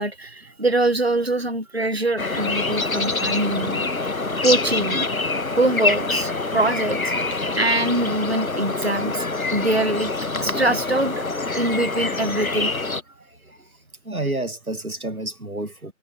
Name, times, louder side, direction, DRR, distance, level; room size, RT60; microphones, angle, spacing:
voice 1, 0.0-3.9 4.4-5.1 5.6-7.1 7.6-9.3 9.5-11.3 11.5-12.7, right 2 dB, 45° right, 1.4 m, -23 dB
sound 1, 2.2-13.0, left 3 dB, 75° left, 1.2 m, -25 dB
voice 2, 7.1-7.6 14.1-15.9, right 2 dB, 90° right, 2.2 m, -30 dB
figure-of-eight pair, 175°, 42 cm